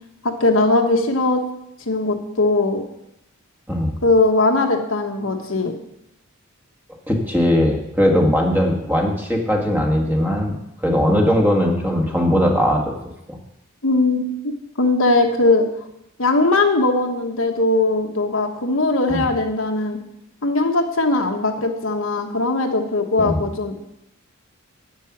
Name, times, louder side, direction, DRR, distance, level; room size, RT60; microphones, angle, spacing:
voice 1, 0.2-1.4 1.9-2.8 4.0-5.7 13.8-15.7 16.2-20.0 20.4-23.8, left 2 dB, 80° left, 4 dB, 1.3 m, -19 dB
voice 2, 7.1-10.6 10.8-12.9 13.3-13.4 19.1-19.3 23.2-23.4, equal, 10° right, 1 dB, 1.6 m, -19 dB
9.9 x 8.4 x 6.0 m, 0.83 s
head